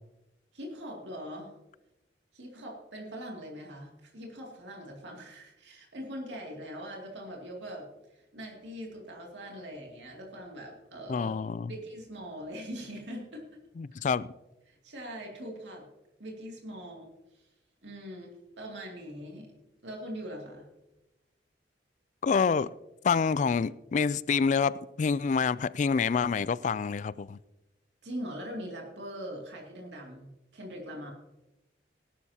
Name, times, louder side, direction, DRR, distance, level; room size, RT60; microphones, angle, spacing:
voice 1, 0.5-1.5 2.3-11.3 11.7-13.6 14.7-15.9 16.2-17.5 17.8-19.5 19.8-20.7 28.0-31.1, equal, 80° right, 2.5 m, -42 dB
voice 2, 11.1-11.7 13.8-14.3 22.2-22.7 23.0-27.4, left 5 dB, 40° left, 0.3 m, -27 dB
19.5 x 11.5 x 2.9 m
head